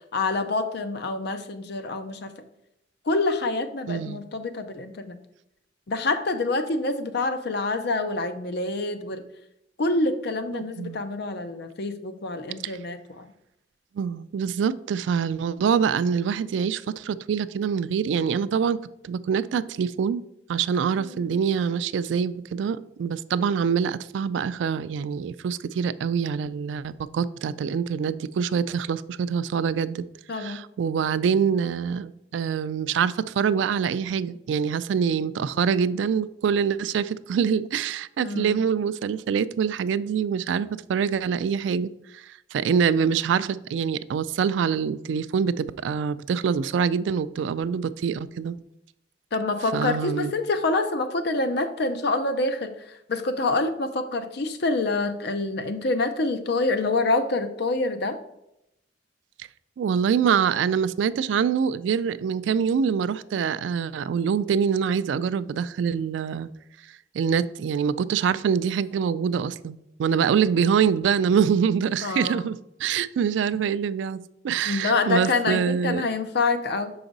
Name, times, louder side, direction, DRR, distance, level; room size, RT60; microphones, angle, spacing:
voice 1, 0.1-2.3 3.1-5.2 5.9-9.2 9.8-13.3 21.0-21.2 30.3-30.6 38.2-38.7 49.3-58.2 72.0-72.5 74.7-76.9, left 3 dB, 65° left, 9 dB, 0.6 m, -26 dB
voice 2, 3.9-4.2 10.5-11.0 12.6-12.7 14.0-18.8 19.0-20.2 20.5-30.0 30.3-48.6 49.7-50.3 59.8-66.5 67.1-76.1, right 7 dB, 80° right, 16 dB, 0.3 m, -25 dB
5.9 x 4.9 x 3.9 m, 0.84 s
head